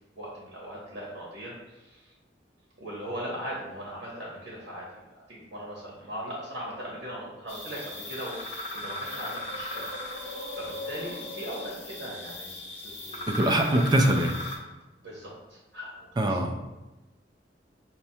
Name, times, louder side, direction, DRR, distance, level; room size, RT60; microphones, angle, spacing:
voice 1, 0.2-2.1 2.8-12.6 12.8-13.4 15.0-16.4, equal, 75° right, -5 dB, 0.9 m, -39 dB
sound 1, 7.5-14.6, left 1 dB, 35° left, 0.7 m, -37 dB
voice 2, 13.3-14.4 16.2-16.6, right 1 dB, 25° right, 3 dB, 0.3 m, -23 dB
5.6 x 2.1 x 2.7 m, 1.1 s
head